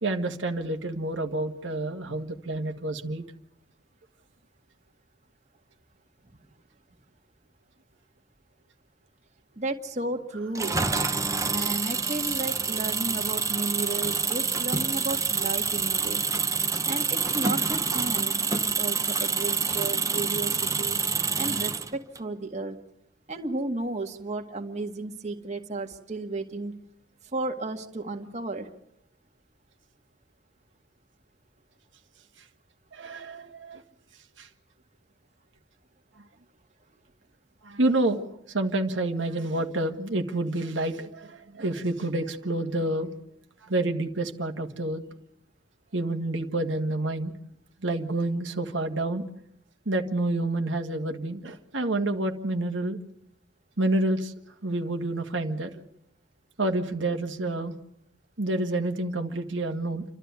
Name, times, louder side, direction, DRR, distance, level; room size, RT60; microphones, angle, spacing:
voice 1, 0.0-3.2 11.5-11.7 32.9-33.8 34.4-34.5 37.6-43.1 43.6-45.0 45.9-47.3 47.8-49.2 49.9-53.0 53.8-54.3 54.6-55.7 56.6-57.8 58.4-60.0, right 2 dB, 90° right, 4 dB, 1.8 m, -28 dB
voice 2, 9.6-10.8 11.5-16.2 16.8-21.0 21.4-22.8 23.3-26.8 27.3-28.7, right 2 dB, 40° right, 3 dB, 1.8 m, -33 dB
Engine, 10.5-22.2, right 5 dB, 15° right, 0.9 m, -27 dB
29.0 x 13.0 x 9.5 m, 0.77 s
head